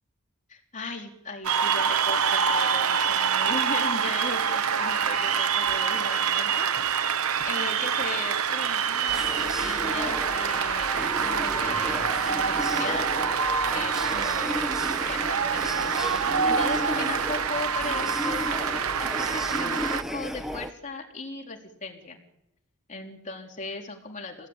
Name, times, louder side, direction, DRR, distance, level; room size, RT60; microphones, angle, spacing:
voice 1, 0.5-13.1 13.7-22.2 22.9-24.5, left 3 dB, 35° left, 1 dB, 3.8 m, -38 dB
Cheering / Applause, 1.4-20.0, right 7 dB, 80° right, 1.0 m, -26 dB
sound 1, 9.1-20.7, equal, ahead, 1.1 m, -34 dB
27.0 x 18.5 x 9.0 m, 0.90 s
head